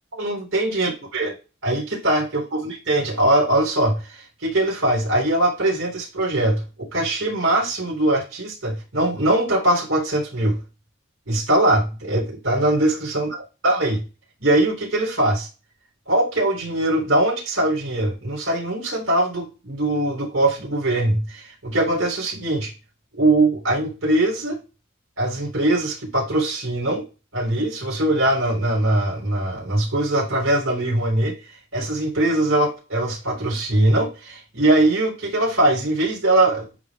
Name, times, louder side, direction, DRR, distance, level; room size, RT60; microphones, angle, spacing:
voice 1, 0.1-1.3 1.6-10.6 11.3-14.0 14.4-15.5 16.1-22.7 23.2-24.6 25.2-27.0 27.3-36.7, right 1 dB, 70° right, -3 dB, 3.8 m, -21 dB
9.9 x 4.0 x 2.5 m, 0.31 s
head